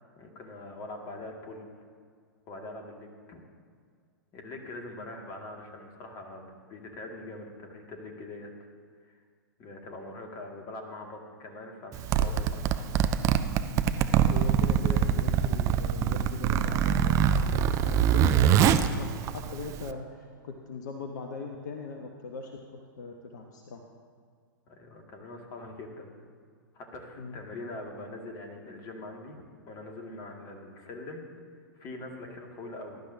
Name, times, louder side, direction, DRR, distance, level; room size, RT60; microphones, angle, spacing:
voice 1, 0.2-1.7 2.5-3.4 4.3-8.5 9.0-9.2 9.6-12.9 19.6-19.7 24.7-26.2 26.7-31.3 31.8-33.0, left 2 dB, 30° left, 2 dB, 2.1 m, -43 dB
Zipper (clothing), 11.9-19.9, right 9 dB, 25° right, 0.6 m, -24 dB
voice 2, 14.3-23.8 27.2-27.4, left 4 dB, 55° left, 3 dB, 1.1 m, -40 dB
21.0 x 11.5 x 2.8 m, 2.1 s
figure-of-eight pair, 105°, 12 cm